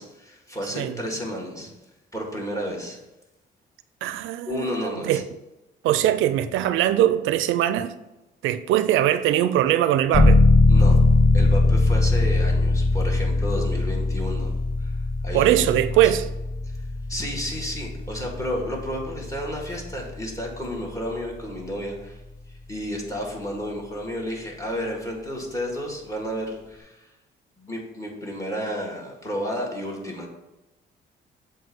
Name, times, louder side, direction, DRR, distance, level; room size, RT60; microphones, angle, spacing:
voice 1, 0.0-1.7 2.1-3.0 4.5-5.2 10.7-11.0 11.3-14.5 14.8-14.9 15.2-16.1 17.1-22.2 22.7-27.1 27.6-30.3, equal, 15° left, 1.9 m, -32 dB
voice 2, 4.0-5.2 5.8-7.9 8.4-10.4 15.3-16.3, right 12 dB, 90° right, 0.4 m, -21 dB
sound 1, 10.1-20.7, left 2 dB, 45° left, 1.4 m, -21 dB
7.6 x 2.7 x 5.4 m
cardioid pair, 90°, 20 cm